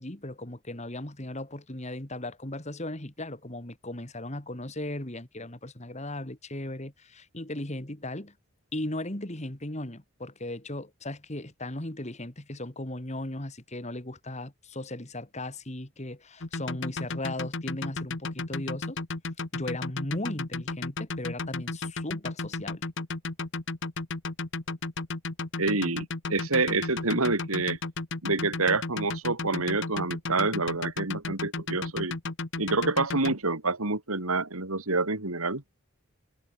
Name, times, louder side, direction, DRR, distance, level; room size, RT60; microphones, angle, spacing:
voice 1, 0.0-8.3 8.7-19.0 19.5-22.8, left 1 dB, 30° left, 2.5 m, -37 dB
sound 1, 16.4-33.3, left 3 dB, 55° left, 1.5 m, -33 dB
voice 2, 25.6-27.8 28.2-32.2 32.6-35.6, right 3 dB, 80° right, 3.4 m, -27 dB
head